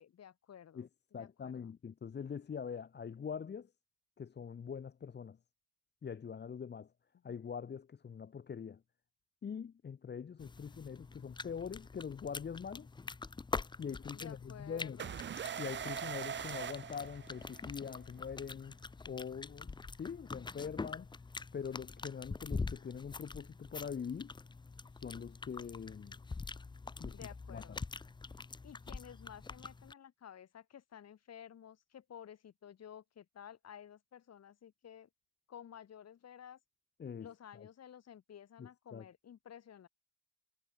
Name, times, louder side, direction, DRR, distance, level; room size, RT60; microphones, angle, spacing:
voice 1, 0.0-1.7 14.1-15.2 27.1-27.8 28.6-35.1 35.5-36.6 37.2-39.9, left 9 dB, 55° left, 3.6 m, -53 dB
voice 2, 1.1-3.7 4.2-5.4 6.0-6.9 7.2-8.8 9.4-12.9 13.8-15.0 15.6-18.8 19.1-21.1 21.5-24.3 25.0-26.2 27.0-27.2 27.5-27.8 37.0-37.7 38.6-39.0, left 7 dB, 35° left, 1.0 m, -43 dB
sound 1, 10.4-29.9, left 4 dB, 15° left, 0.5 m, -45 dB
sound 2, 15.0-17.8, right 8 dB, 40° right, 0.7 m, -41 dB
cardioid pair, 90°, 30 cm